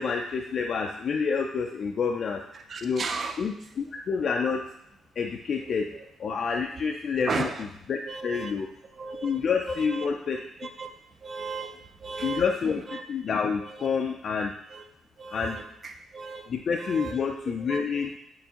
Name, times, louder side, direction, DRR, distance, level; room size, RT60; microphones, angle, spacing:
voice 1, 0.0-2.4 2.8-3.0 3.4-4.6 5.2-5.9 6.2-8.7 9.2-10.4 12.2-14.5 15.3-15.6 16.5-18.1, left 5 dB, 55° left, 2 dB, 0.3 m, -28 dB
voice 2, 2.5-3.4 5.9-6.0 7.3-7.6 8.1-8.5 8.9-9.4 9.6-10.1 10.6-10.9 11.2-12.5 12.9-13.0 13.6-13.9 14.7-14.8 15.2-16.5 16.8-17.3 17.7-18.0, right 4 dB, 45° right, 5 dB, 0.4 m, -35 dB
4.4 x 3.3 x 2.8 m, 0.79 s
cardioid pair, 90°, 0 cm